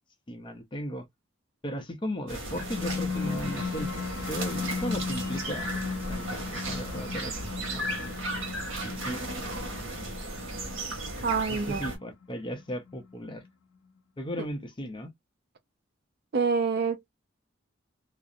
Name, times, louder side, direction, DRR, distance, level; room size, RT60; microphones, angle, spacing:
voice 1, 0.3-1.1 1.6-5.7 6.1-8.2 8.7-9.2 11.5-13.4 14.2-15.1, equal, 25° left, 0.5 m, -36 dB
sound 1, 2.3-13.3, left 5 dB, 75° left, 0.4 m, -36 dB
sound 2, 2.3-12.0, right 1 dB, 75° right, 1.1 m, -35 dB
voice 2, 11.2-11.9 14.4-14.5 16.3-17.1, right 5 dB, 50° right, 0.4 m, -27 dB
2.4 x 2.0 x 2.6 m
head